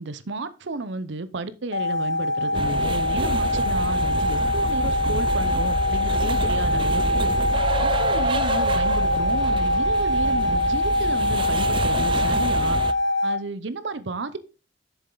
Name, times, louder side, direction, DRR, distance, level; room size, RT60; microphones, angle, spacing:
voice 1, 0.0-7.3 7.8-12.8 13.2-14.4, right 3 dB, 65° right, 0.7 m, -32 dB
sound 1, 1.7-13.4, left 1 dB, 65° left, 0.7 m, -23 dB
sound 2, 2.5-12.9, right 2 dB, 25° right, 0.4 m, -28 dB
7.1 x 6.9 x 3.9 m
head